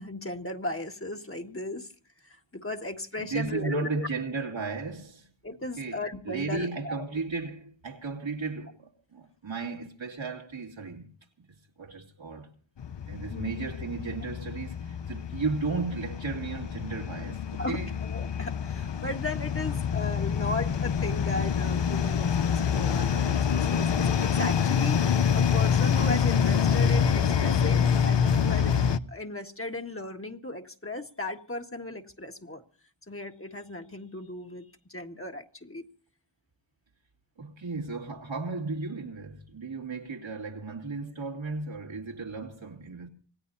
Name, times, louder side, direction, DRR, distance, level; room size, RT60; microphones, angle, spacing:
voice 1, 0.0-1.9 2.2-4.1 5.4-7.0 13.3-13.6 17.6-28.8 29.1-32.6 33.1-35.8, left 2 dB, 30° left, 1.7 m, -36 dB
voice 2, 3.2-5.3 5.8-11.1 11.4-11.5 11.8-12.5 13.1-17.9 37.4-43.1, right 4 dB, 85° right, 2.9 m, -35 dB
sound 1, 12.8-29.0, left 7 dB, 70° left, 0.8 m, -26 dB
26.5 x 17.5 x 2.7 m
wide cardioid pair, 55°, 45 cm